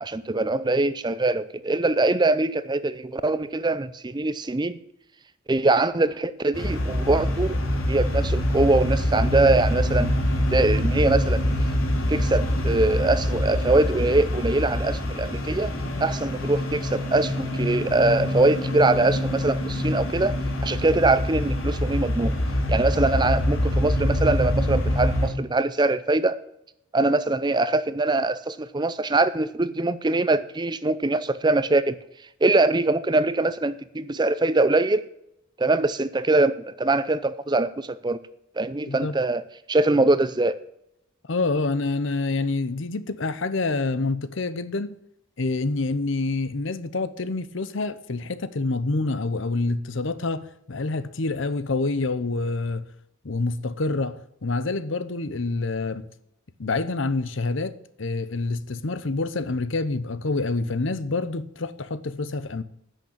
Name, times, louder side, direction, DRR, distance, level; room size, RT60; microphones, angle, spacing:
voice 1, 0.0-4.8 5.5-7.6 7.9-10.1 10.5-11.4 12.1-15.7 16.0-20.4 20.6-22.3 22.7-26.4 26.9-32.0 32.4-35.0 35.6-38.2 38.6-39.4 39.7-40.6, right 2 dB, 20° right, 0.5 m, -23 dB
sound 1, 6.5-25.3, left 1 dB, 85° left, 2.6 m, -25 dB
voice 2, 41.3-44.9 45.4-52.9 53.2-56.1 56.6-62.6, left 3 dB, 65° left, 0.8 m, -27 dB
10.5 x 6.5 x 8.7 m
head